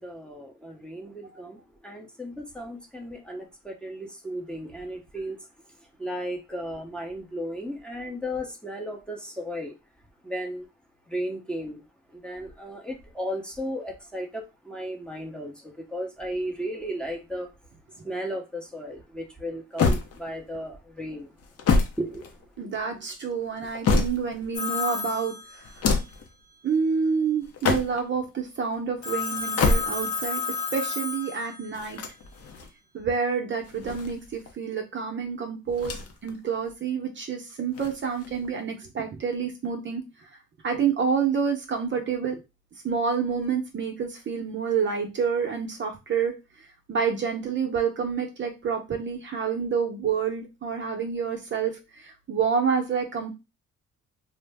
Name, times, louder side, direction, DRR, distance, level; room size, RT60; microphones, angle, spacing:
voice 1, 0.0-9.8 10.2-10.7 11.1-11.8 12.1-17.5 17.9-21.3 22.0-22.7, equal, 5° left, 0.7 m, -35 dB
sound 1, 19.8-20.6 21.4-22.8 23.4-24.5 25.6-26.3 27.4-28.2 29.4-30.2 31.7-32.7 33.6-34.5 35.7-36.3 36.6-36.7 37.7-38.5, left 4 dB, 50° left, 0.7 m, -27 dB
voice 2, 22.6-25.6 26.6-30.4 30.7-32.0 32.9-40.0 40.6-42.4 42.8-46.3 46.9-53.3, right 6 dB, 40° right, 0.6 m, -28 dB
Telephone, 24.5-26.1 29.0-31.9, left 5 dB, 70° left, 1.1 m, -32 dB
2.6 x 2.0 x 3.3 m
cardioid pair, 90°, 30 cm